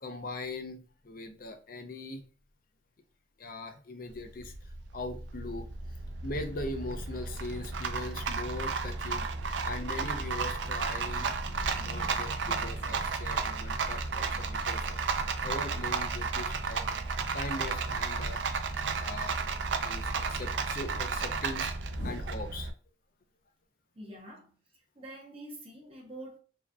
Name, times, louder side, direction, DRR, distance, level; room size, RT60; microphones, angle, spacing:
voice 1, 0.0-2.2 3.4-5.7 6.2-9.3 9.6-16.8 17.3-18.5 19.0-19.4 19.8-22.7, left 2 dB, 50° left, 0.6 m, -40 dB
Rattle, 4.1-22.7, right 4 dB, 80° right, 0.5 m, -33 dB
sound 1, 4.5-5.1 6.3-8.3 8.9-9.5 10.2-10.3 10.7-12.7 13.8-14.4 15.1-18.6 18.9-19.0 19.5-22.7, left 1 dB, 85° left, 0.9 m, -47 dB
voice 2, 23.9-26.4, right 1 dB, 30° right, 0.8 m, -46 dB
4.7 x 2.8 x 2.2 m
head